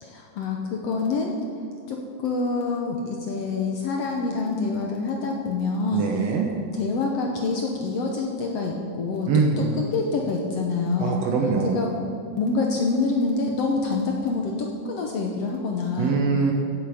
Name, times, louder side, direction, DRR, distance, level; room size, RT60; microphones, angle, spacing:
voice 1, 0.0-1.4 1.9-6.0 6.8-9.3 9.8-11.2 11.7-11.9 12.4-16.2, left 3 dB, 70° left, 0 dB, 1.6 m, -26 dB
voice 2, 5.9-6.5 9.3-9.8 11.0-11.8 16.0-16.5, right 4 dB, 65° right, 1 dB, 1.7 m, -23 dB
16.0 x 8.2 x 5.0 m, 2.5 s
omnidirectional pair, 3.7 m